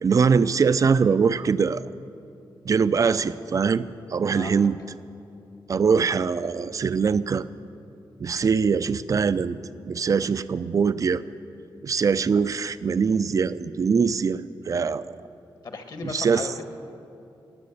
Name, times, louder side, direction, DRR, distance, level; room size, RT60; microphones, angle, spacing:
voice 1, 0.0-1.8 2.7-3.9 4.1-4.8 5.7-7.4 8.2-9.6 9.9-11.2 11.8-14.4 14.7-15.1 16.0-16.5, right 5 dB, 40° right, 15 dB, 0.4 m, -22 dB
voice 2, 15.6-16.7, left 4 dB, 55° left, 6 dB, 1.5 m, -35 dB
20.0 x 7.6 x 8.5 m, 2.6 s
wide cardioid pair, 120°, 9 cm